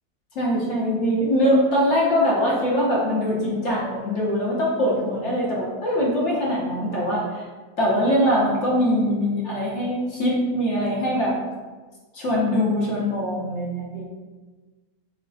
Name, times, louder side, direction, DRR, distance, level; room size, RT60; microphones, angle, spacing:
voice 1, 0.3-7.4 7.8-11.4 12.1-14.1, equal, 60° left, -5 dB, 1.0 m, -22 dB
3.2 x 2.1 x 3.8 m, 1.3 s
omnidirectional pair, 1.5 m